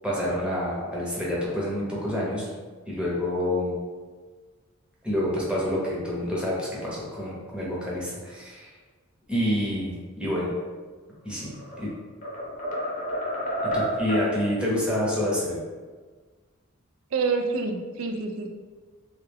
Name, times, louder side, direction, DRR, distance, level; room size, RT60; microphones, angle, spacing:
voice 1, 0.0-2.5 2.9-3.8 5.0-8.7 9.3-10.5 11.2-11.9 13.7-15.6, left 1 dB, 5° right, -6 dB, 0.8 m, -28 dB
sound 1, 11.3-11.8 12.2-14.3, right 1 dB, 40° left, 0.7 m, -29 dB
voice 2, 17.1-18.5, right 4 dB, 80° right, 4 dB, 0.4 m, -27 dB
3.2 x 2.3 x 3.4 m, 1.4 s
head